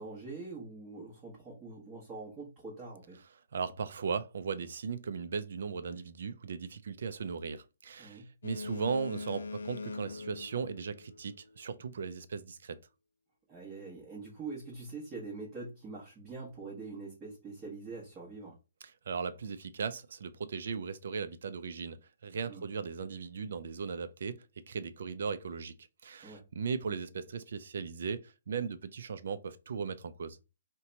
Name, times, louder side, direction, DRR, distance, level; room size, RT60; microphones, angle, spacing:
voice 1, 0.0-3.2 8.0-8.3 13.5-18.6 22.5-22.6 26.2-26.5, right 3 dB, 20° right, 1.1 m, -44 dB
voice 2, 3.5-12.8 19.1-30.4, right 5 dB, 65° right, 0.4 m, -37 dB
Boat Water vehicle, 8.4-11.6, left 3 dB, 85° left, 0.3 m, -42 dB
2.8 x 2.2 x 3.9 m
hypercardioid pair, 150°, 0 cm